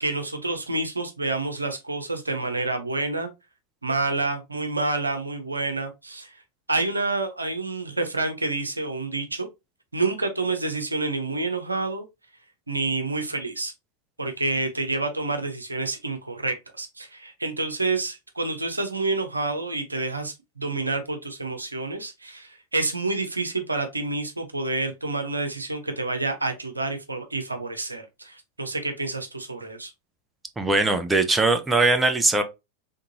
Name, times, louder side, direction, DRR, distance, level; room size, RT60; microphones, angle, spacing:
voice 1, 0.0-3.3 3.8-6.4 6.7-9.5 9.9-12.0 12.7-13.7 14.2-29.9, right 3 dB, 80° right, 0.8 m, -28 dB
voice 2, 30.6-32.4, right 3 dB, 10° right, 0.6 m, -20 dB
3.7 x 3.5 x 2.7 m
figure-of-eight pair, 90°, 0 cm